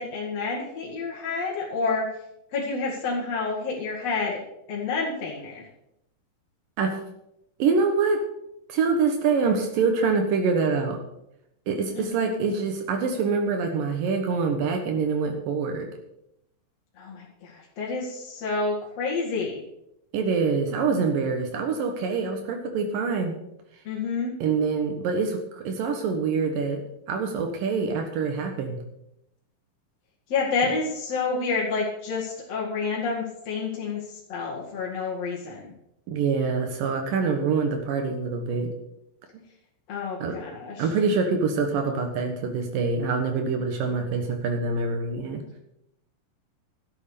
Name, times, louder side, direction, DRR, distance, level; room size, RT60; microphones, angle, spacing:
voice 1, 0.0-2.1 2.5-4.4 4.7-5.7 11.9-12.1 17.0-19.6 23.9-24.3 30.3-35.7 39.9-40.9, left 4 dB, 50° left, -4 dB, 2.9 m, -29 dB
voice 2, 7.6-8.2 8.7-11.0 11.7-15.9 20.1-23.3 24.4-26.8 27.1-28.8 36.1-38.7 40.2-40.4 40.8-45.4, right 5 dB, 75° right, 4 dB, 3.0 m, -25 dB
12.5 x 8.2 x 6.8 m, 0.82 s
omnidirectional pair, 4.0 m